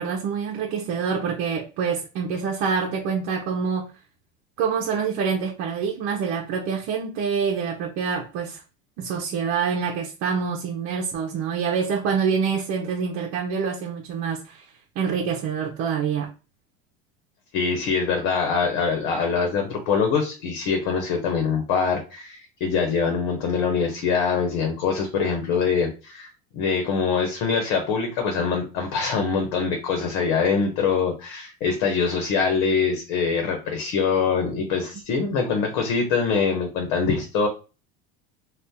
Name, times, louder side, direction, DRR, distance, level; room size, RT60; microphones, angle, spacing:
voice 1, 0.0-3.9 4.6-8.6 9.0-14.6 15.0-16.3, right 6 dB, 55° right, 0.8 m, -26 dB
voice 2, 17.5-26.3 26.5-37.5, left 5 dB, 65° left, 1.1 m, -24 dB
2.7 x 2.5 x 3.6 m
supercardioid pair, 100°, 32 cm